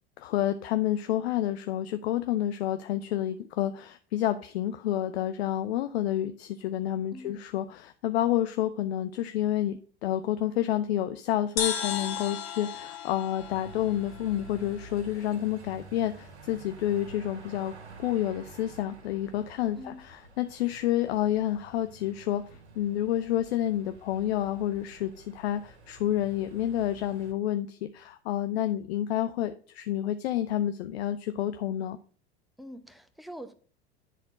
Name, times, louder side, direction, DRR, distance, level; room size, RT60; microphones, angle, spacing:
voice 1, 0.2-17.7 18.0-22.4 22.8-32.0, left 12 dB, 70° left, 9 dB, 0.7 m, -29 dB
voice 2, 7.1-7.4 19.7-20.0 32.6-33.5, equal, ahead, 10 dB, 0.9 m, -44 dB
sound 1, 11.6-15.1, left 8 dB, 50° left, 2.1 m, -35 dB
sound 2, 13.4-27.3, right 3 dB, 85° right, 1.7 m, -50 dB
10.0 x 4.3 x 5.2 m, 0.42 s
hypercardioid pair, 90°, 33 cm